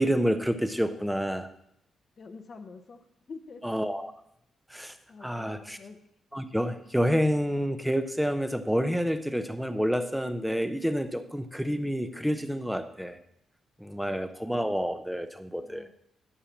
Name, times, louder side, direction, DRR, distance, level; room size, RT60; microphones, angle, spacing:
voice 1, 0.0-1.5 3.6-4.1 4.7-5.0 5.2-5.8 6.3-13.2 13.8-15.9, equal, ahead, 9 dB, 0.8 m, -28 dB
voice 2, 2.2-3.0 3.3-3.6 5.1-6.0 15.6-15.9, left 4 dB, 45° left, 8 dB, 0.9 m, -46 dB
11.5 x 5.5 x 7.2 m, 0.77 s
cardioid pair, 120°, 0 cm